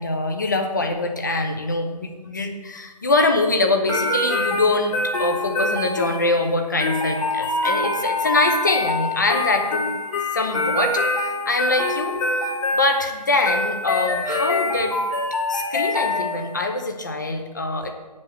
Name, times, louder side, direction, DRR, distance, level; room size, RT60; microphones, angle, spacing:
voice 1, 0.0-4.9 5.2-9.9 10.3-14.9 15.5-17.9, left 2 dB, 30° left, 4 dB, 0.9 m, -24 dB
sound 1, 3.9-16.7, left 2 dB, 50° left, 2.5 m, -25 dB
8.5 x 5.4 x 7.7 m, 1.2 s
figure-of-eight pair, 170°, 21 cm